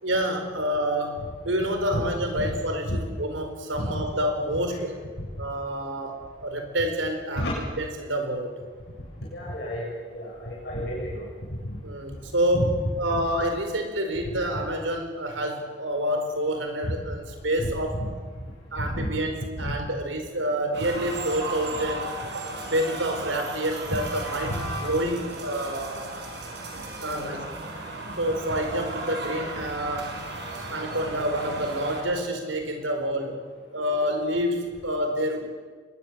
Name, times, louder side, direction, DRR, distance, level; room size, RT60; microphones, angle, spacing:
voice 1, 0.0-5.0 5.4-7.4 7.8-8.5 11.8-18.0 18.7-26.0 27.0-27.4 28.2-30.2 30.7-33.4 33.7-35.5, equal, 85° right, 5 dB, 4.6 m, -28 dB
voice 2, 9.3-9.9 10.1-11.2 12.5-12.7 13.1-13.2 16.8-16.9 17.6-18.1 18.9-19.1 19.6-19.8 23.9-24.0 24.5-24.6 27.0-27.4, equal, 60° left, -5 dB, 7.6 m, -31 dB
sound 1, 20.7-32.0, right 2 dB, 65° right, 5.8 m, -35 dB
24.0 x 21.0 x 7.6 m, 1.5 s
head